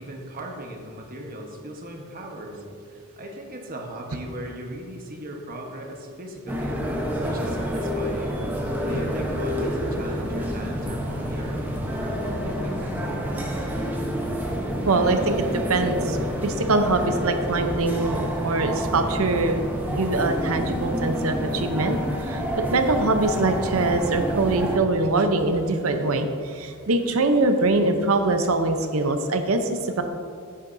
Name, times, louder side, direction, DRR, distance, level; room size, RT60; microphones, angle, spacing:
voice 1, 0.0-6.8 7.2-8.5 8.8-13.7, right 1 dB, 40° right, 1 dB, 1.2 m, -38 dB
sound 1, 6.5-24.8, equal, 10° right, 0.9 m, -28 dB
voice 2, 14.9-30.0, right 2 dB, 85° right, 7 dB, 0.8 m, -23 dB
10.5 x 8.5 x 2.7 m, 2.4 s
head